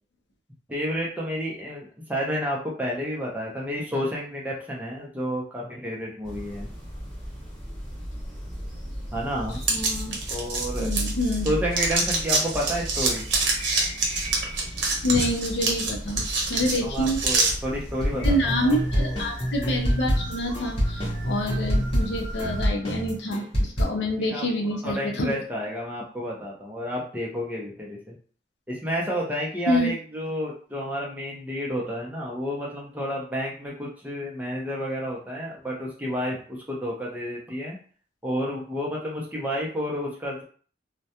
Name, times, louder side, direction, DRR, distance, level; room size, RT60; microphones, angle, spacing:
voice 1, 0.7-6.7 9.1-9.6 10.3-10.9 11.4-13.3 16.8-19.2 24.2-24.4 24.8-28.0 28.7-37.8 38.2-40.4, equal, 10° right, -3 dB, 0.5 m, -30 dB
sound 1, 6.2-22.7, equal, 10° left, 1.0 m, -36 dB
sound 2, 9.6-11.5 11.7-17.5, right 3 dB, 70° right, 0.8 m, -25 dB
voice 2, 9.7-10.2 10.8-11.5 15.0-16.2 16.5-17.2 18.2-25.4 29.7-29.9, left 1 dB, 65° left, 3 dB, 0.5 m, -27 dB
sound 3, 18.0-23.8, equal, 30° left, 0.8 m, -26 dB
2.3 x 2.1 x 2.8 m, 0.43 s
head